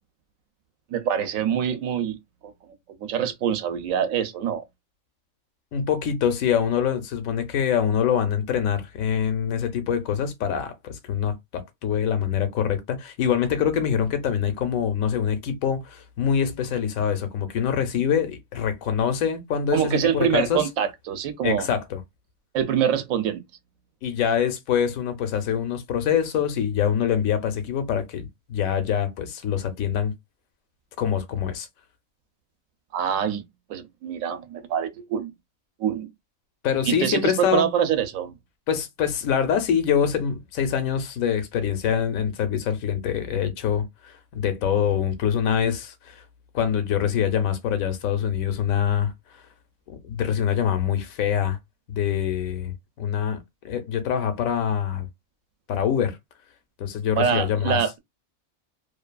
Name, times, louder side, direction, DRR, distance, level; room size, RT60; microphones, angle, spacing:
voice 1, 0.9-2.2 2.4-2.5 3.0-4.6 19.7-21.7 22.5-23.4 32.9-33.4 33.7-35.3 35.8-36.1 36.9-38.3 57.2-58.0, right 8 dB, 75° right, 1.0 m, -25 dB
voice 2, 5.7-20.6 21.4-22.0 24.0-30.1 31.0-31.7 36.6-37.7 38.7-46.2 46.5-49.1 49.9-51.6 51.9-53.4 53.6-55.1 55.7-56.2 56.8-57.8, left 8 dB, 85° left, 1.0 m, -25 dB
2.6 x 2.4 x 2.2 m
omnidirectional pair, 1.4 m